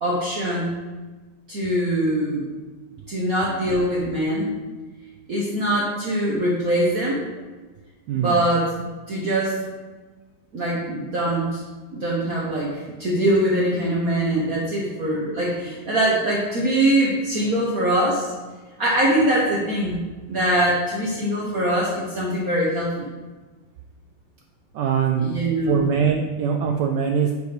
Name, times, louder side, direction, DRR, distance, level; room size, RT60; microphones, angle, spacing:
voice 1, 0.0-0.8 1.5-2.5 3.1-4.5 5.3-7.2 8.1-8.7 9.1-9.6 10.5-11.6 11.9-18.3 18.8-20.0 20.3-23.1 25.2-25.8, right 1 dB, 50° right, -5 dB, 1.5 m, -22 dB
voice 2, 8.1-8.4 24.7-25.3 25.6-27.3, right 7 dB, 75° right, 4 dB, 1.0 m, -22 dB
8.0 x 4.8 x 5.1 m, 1.3 s
omnidirectional pair, 2.3 m